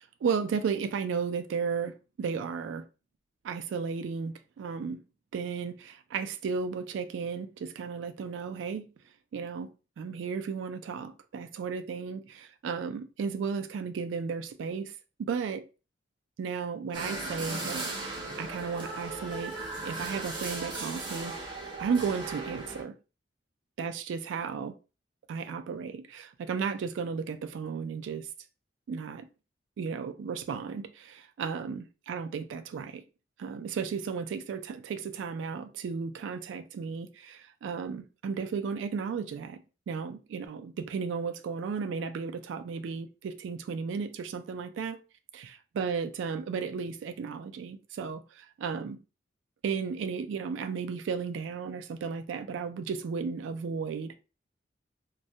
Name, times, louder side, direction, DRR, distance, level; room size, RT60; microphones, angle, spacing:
voice 1, 0.2-2.9 3.4-5.0 5.3-8.9 9.3-9.7 10.0-15.6 16.4-19.5 19.8-21.3 21.8-23.0 23.8-24.8 25.3-28.3 28.9-29.3 29.8-33.0 33.4-39.6 39.9-45.0 45.3-49.0 49.6-54.1, right 5 dB, 80° right, 0.3 m, -34 dB
sound 1, 16.9-22.8, right 2 dB, 25° right, 0.5 m, -37 dB
2.2 x 2.1 x 2.7 m
head